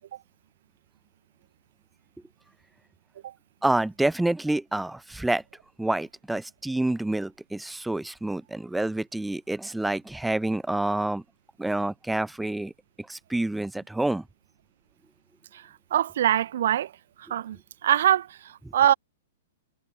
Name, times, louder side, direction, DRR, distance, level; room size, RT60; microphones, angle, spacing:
voice 1, 3.6-5.4 5.8-11.2 11.6-12.7 13.0-14.2, right 2 dB, 5° right, 0.6 m, -28 dB
voice 2, 15.9-16.9 17.2-17.6 17.8-18.9, right 11 dB, 55° right, 0.6 m, -23 dB
figure-of-eight pair, 105°, 0 cm